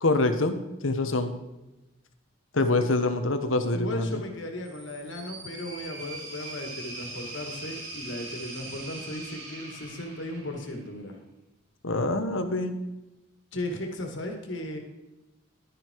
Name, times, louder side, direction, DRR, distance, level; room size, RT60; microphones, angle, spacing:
voice 1, 0.0-0.6 0.8-1.3 2.5-4.2 11.8-12.7, left 2 dB, 90° left, 8 dB, 1.3 m, -25 dB
voice 2, 3.7-11.2 13.5-14.8, left 1 dB, 70° left, 3 dB, 2.2 m, -36 dB
sound 1, 4.6-10.9, right 2 dB, 80° right, 4.0 m, -41 dB
11.5 x 10.5 x 4.7 m, 1.0 s
head